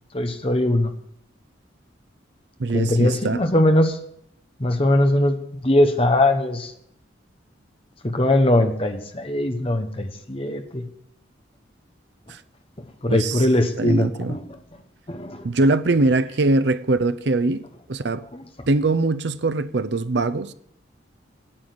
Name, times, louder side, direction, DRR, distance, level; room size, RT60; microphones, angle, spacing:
voice 1, 0.1-0.9 2.7-4.0 4.6-6.7 8.0-10.8 13.0-14.4 15.1-15.5 18.3-18.4, left 1 dB, 30° left, 1.1 m, -20 dB
voice 2, 2.6-3.4 12.3-12.4 13.1-13.5 13.8-14.4 15.4-17.6 17.9-18.3 18.7-20.5, right 2 dB, 60° right, 0.6 m, -22 dB
8.9 x 8.8 x 7.9 m
head